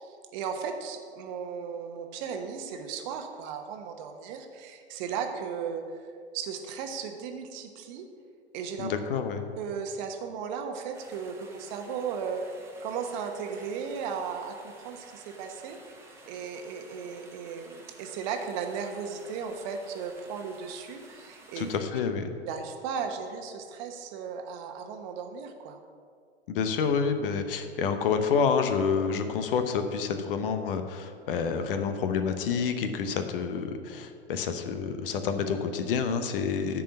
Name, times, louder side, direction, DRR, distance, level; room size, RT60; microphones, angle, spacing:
voice 1, 0.0-5.9 6.3-8.1 8.5-8.9 9.6-12.4 12.8-21.6 22.5-25.8, right 6 dB, 45° right, 5 dB, 1.1 m, -36 dB
voice 2, 8.8-9.4 21.6-22.3 26.5-36.8, left 6 dB, 55° left, 8 dB, 0.9 m, -28 dB
sound 1, 10.9-21.8, right 2 dB, 10° right, 1.4 m, -53 dB
10.0 x 4.7 x 7.3 m, 2.1 s
figure-of-eight pair, 100°, 33 cm